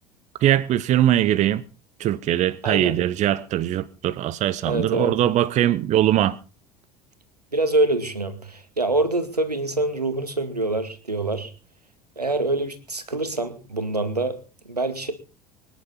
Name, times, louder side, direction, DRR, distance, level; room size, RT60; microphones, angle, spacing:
voice 1, 0.4-1.6 2.0-6.4, right 12 dB, 35° right, 0.9 m, -21 dB
voice 2, 2.6-3.0 4.6-5.2 7.5-11.5 12.2-14.4 14.7-15.1, right 2 dB, 85° right, 2.1 m, -25 dB
25.5 x 10.5 x 4.3 m
figure-of-eight pair, 70°, 20 cm